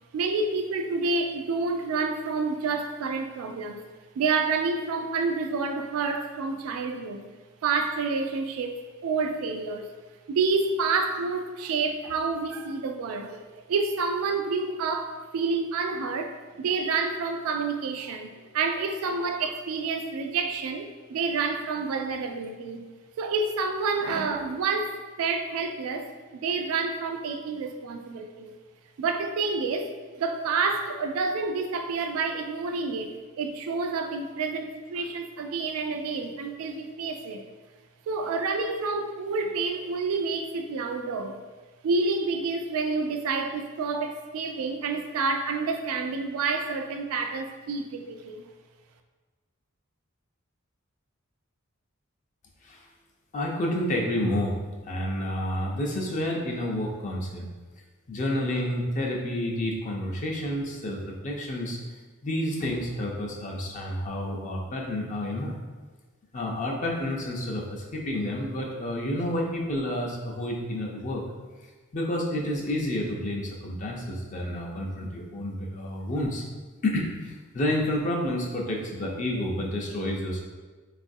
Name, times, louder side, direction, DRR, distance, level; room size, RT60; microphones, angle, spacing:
voice 1, 0.1-3.8 4.2-7.2 7.6-8.7 9.0-9.9 10.3-13.4 13.7-16.3 16.6-22.8 23.2-28.5 29.0-29.9 30.2-37.5 38.1-41.4 41.8-48.4, right 4 dB, 85° right, 6 dB, 0.3 m, -28 dB
voice 2, 53.3-54.6 54.9-57.5 58.1-61.8 62.2-65.6 66.3-71.2 71.9-76.4 76.8-80.4, left 1 dB, 35° left, -1 dB, 0.4 m, -29 dB
3.8 x 2.4 x 2.6 m, 1.3 s
head